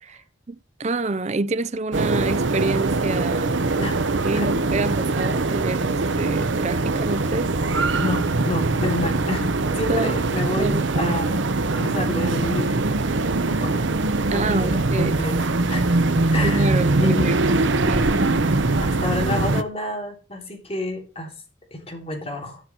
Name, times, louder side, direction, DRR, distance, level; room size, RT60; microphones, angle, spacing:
voice 1, 0.5-3.6 4.2-5.9 6.2-7.5 9.9-10.2 10.5-11.1 14.3-15.2 16.4-17.4 17.8-18.1, right 3 dB, 35° right, 0.5 m, -27 dB
sound 1, 1.9-19.6, right 2 dB, 75° right, 1.0 m, -22 dB
voice 2, 8.0-9.5 9.8-11.4 11.7-13.0 13.5-13.8 14.3-15.3 15.7-15.9 16.3-17.6 18.8-21.3 21.7-22.6, left 2 dB, 30° left, 3.3 m, -29 dB
12.5 x 5.9 x 4.5 m
head